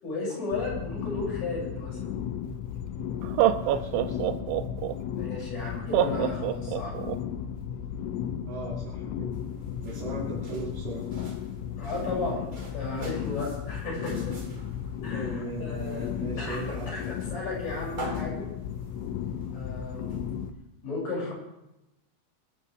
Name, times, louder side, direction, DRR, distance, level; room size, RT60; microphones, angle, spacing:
voice 1, 0.0-2.1 5.2-7.0 11.8-12.4 12.7-14.4 15.0-15.3 15.6-16.1 16.4-17.0 17.3-18.5 19.5-20.2 20.8-21.3, left 3 dB, 40° left, -4 dB, 8.1 m, -34 dB
sound 1, 0.5-20.5, left 9 dB, 80° left, 3.4 m, -35 dB
Laughter, 2.5-2.6 3.2-4.9 5.9-7.2, right 12 dB, 80° right, 2.9 m, -25 dB
voice 2, 3.6-4.4 8.5-9.4 9.8-11.0 15.1-17.2, right 2 dB, 55° right, -5 dB, 4.4 m, -38 dB
sound 2, 9.3-20.5, right 2 dB, 30° right, 3.4 m, -47 dB
26.0 x 12.5 x 3.5 m, 0.92 s
omnidirectional pair, 5.8 m